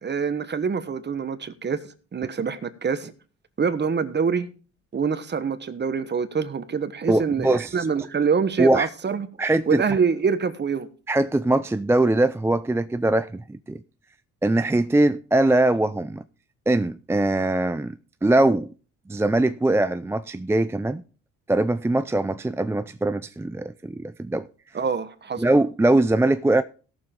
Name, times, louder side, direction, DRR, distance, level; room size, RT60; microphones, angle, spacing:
voice 1, 0.0-1.8 2.1-3.1 3.6-4.5 4.9-9.3 9.7-10.9 24.7-25.4, right 6 dB, 35° right, 1.3 m, -25 dB
voice 2, 7.1-7.8 8.6-8.9 9.4-9.8 11.1-13.8 14.4-16.2 16.7-18.7 19.1-21.0 21.5-24.5 25.4-26.6, right 2 dB, 10° right, 0.4 m, -22 dB
17.0 x 7.0 x 3.7 m
cardioid pair, 90°, 30 cm